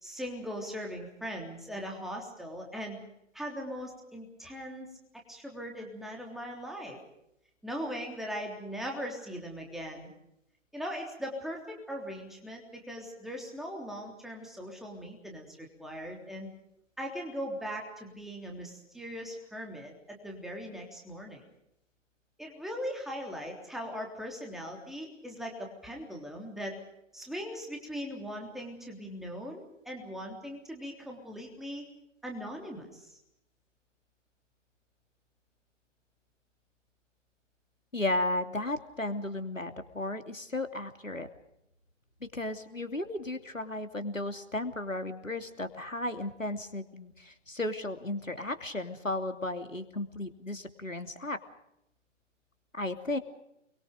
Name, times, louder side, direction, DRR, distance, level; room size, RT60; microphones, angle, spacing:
voice 1, 0.0-3.0 3.3-4.9 5.3-7.0 7.6-10.1 10.7-16.5 17.0-21.4 22.4-26.8 27.1-31.8 32.2-33.2, equal, ahead, 1 dB, 3.4 m, -40 dB
voice 2, 37.9-41.3 42.2-51.4 52.7-53.2, left 2 dB, 90° left, 7 dB, 3.0 m, -34 dB
29.5 x 23.0 x 5.1 m, 0.79 s
figure-of-eight pair, 135°, 38 cm